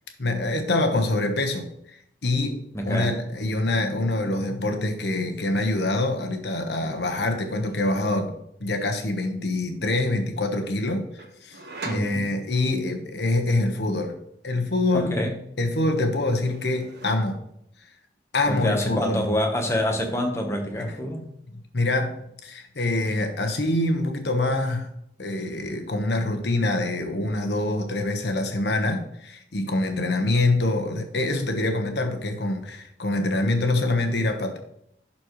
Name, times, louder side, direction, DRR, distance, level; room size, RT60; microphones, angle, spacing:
voice 1, 0.2-2.6 2.8-8.3 8.6-11.6 11.9-14.1 14.4-15.2 15.6-17.4 18.3-19.3 21.5-24.9 25.2-34.6, left 2 dB, 75° left, 4 dB, 1.1 m, -25 dB
voice 2, 2.7-3.2 11.8-12.3 14.9-15.4 18.5-21.2, equal, 15° left, 3 dB, 1.0 m, -26 dB
sound 1, 4.5-4.8 5.0-5.8 6.8-8.2 11.2-12.8 15.0-15.6 15.9-17.6, right 3 dB, 65° right, 1.3 m, -43 dB
11.5 x 4.3 x 3.1 m, 0.74 s
head